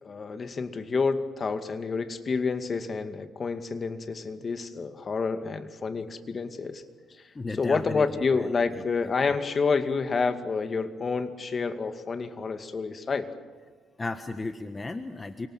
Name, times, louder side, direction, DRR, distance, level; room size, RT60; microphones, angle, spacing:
voice 1, 0.0-6.8 7.6-13.3, left 4 dB, 40° left, 9 dB, 2.2 m, -29 dB
voice 2, 7.3-9.1 14.0-15.5, left 3 dB, 25° left, 8 dB, 1.4 m, -35 dB
29.0 x 25.5 x 7.5 m, 1.5 s
cardioid pair, 90°, 0 cm